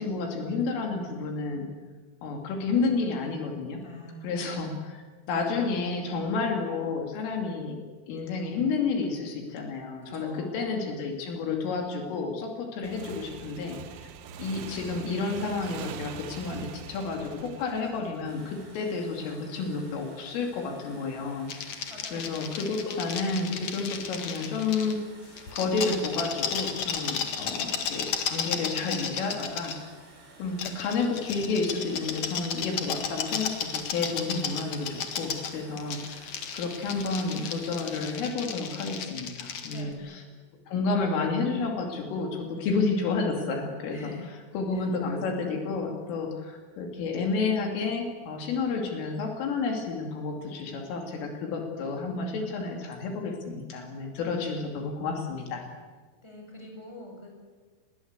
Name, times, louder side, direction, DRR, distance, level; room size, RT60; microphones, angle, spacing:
voice 1, 0.0-1.7 2.2-3.8 4.2-5.0 5.3-7.8 8.1-14.1 14.4-21.5 22.1-25.0 25.5-29.8 30.4-40.2 40.7-44.1 44.5-55.7, left 4 dB, 75° left, 2 dB, 5.1 m, -30 dB
voice 2, 3.8-4.4 10.0-10.6 21.9-22.3 39.7-40.1 43.9-44.3 44.7-44.9 56.2-57.3, left 1 dB, 5° left, 1 dB, 6.4 m, -45 dB
Motorcycle / Engine, 12.8-19.2, right 8 dB, 75° right, 4.0 m, -43 dB
sound 1, 18.2-38.2, right 2 dB, 55° right, 9.6 m, -53 dB
sound 2, 21.5-25.0 25.4-29.8 30.6-39.8, left 7 dB, 55° left, 2.2 m, -34 dB
28.0 x 21.0 x 8.2 m, 1.5 s
omnidirectional pair, 6.0 m